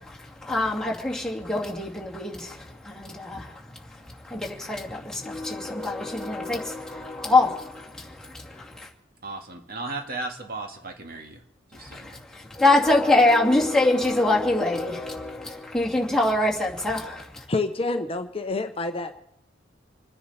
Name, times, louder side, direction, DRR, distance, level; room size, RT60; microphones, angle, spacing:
voice 1, 0.0-3.6 4.0-8.9 11.7-17.4, left 2 dB, 5° left, -3 dB, 2.4 m, -25 dB
voice 2, 9.2-11.4 11.7-12.2, right 2 dB, 55° right, 3 dB, 1.9 m, -35 dB
voice 3, 17.5-19.2, left 3 dB, 30° left, 7 dB, 0.8 m, -28 dB
27.5 x 10.0 x 4.2 m, 0.76 s
head